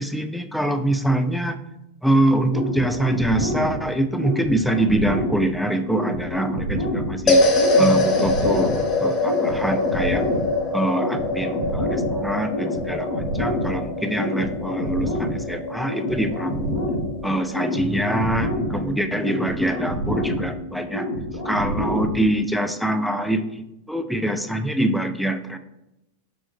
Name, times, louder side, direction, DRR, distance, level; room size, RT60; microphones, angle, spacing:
voice 1, 0.0-1.6 2.0-7.5 7.8-10.3 10.7-16.8 17.2-21.1 21.4-25.6, right 1 dB, ahead, 8 dB, 0.3 m, -24 dB
sound 1, 2.5-22.5, left 1 dB, 65° right, 1.3 m, -28 dB
sound 2, 7.3-17.7, left 2 dB, 25° left, 0.8 m, -24 dB
5.3 x 2.1 x 4.4 m, 0.91 s
figure-of-eight pair, 90°, 0 cm